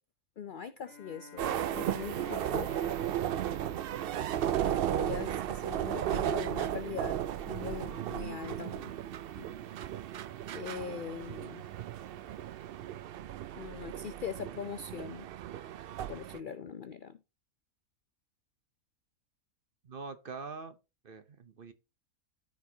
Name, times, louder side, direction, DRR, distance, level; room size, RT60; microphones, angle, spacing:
voice 1, 0.4-2.7 4.7-7.2 7.5-8.9 9.4-9.5 10.5-11.6 13.5-15.3 16.1-17.2, left 7 dB, 85° left, 0.4 m, -41 dB
Bowed string instrument, 0.8-5.2, left 5 dB, 65° left, 1.6 m, -53 dB
sound 1, 1.4-16.4, right 11 dB, 75° right, 0.5 m, -35 dB
sound 2, 3.5-9.1, left 1 dB, 15° right, 1.8 m, -58 dB
voice 2, 19.8-20.8 21.0-21.7, right 4 dB, 45° right, 0.9 m, -44 dB
13.5 x 4.8 x 2.8 m
omnidirectional pair, 1.5 m